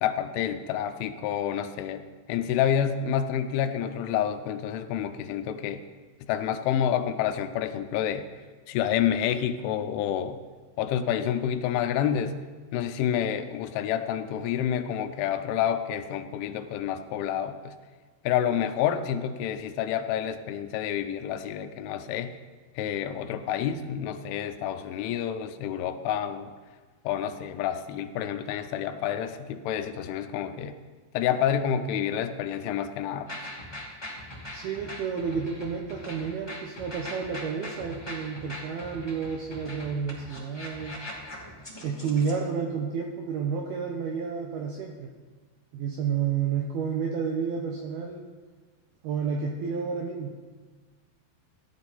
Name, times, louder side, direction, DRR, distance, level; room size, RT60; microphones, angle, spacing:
voice 1, 0.0-5.8 6.3-8.3 8.7-10.4 10.8-12.4 12.7-17.7 18.2-22.3 22.8-26.5 27.0-30.8 31.1-33.3, left 9 dB, 85° left, 9 dB, 3.2 m, -28 dB
sound 1, 33.3-42.4, left 1 dB, 15° left, 0.8 m, -41 dB
voice 2, 34.5-41.1 41.8-45.1 45.7-48.2 49.0-50.3, right 6 dB, 80° right, 1 dB, 2.3 m, -30 dB
15.5 x 11.0 x 4.1 m, 1.4 s
omnidirectional pair, 5.5 m